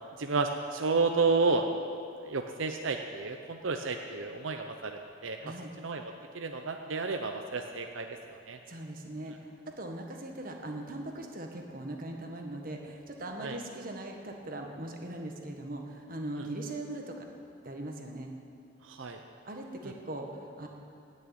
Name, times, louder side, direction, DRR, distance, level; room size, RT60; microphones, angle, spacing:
voice 1, 0.2-1.6 2.2-5.4 5.8-6.0 6.3-8.6 13.4-13.6 16.3-16.4 18.8-19.2, right 4 dB, 80° right, 4 dB, 0.7 m, -31 dB
voice 2, 5.4-5.7 8.7-9.5 9.8-17.3 17.6-18.3 19.4-20.7, right 1 dB, 45° right, 2 dB, 1.5 m, -40 dB
17.0 x 6.6 x 9.3 m, 2.5 s
head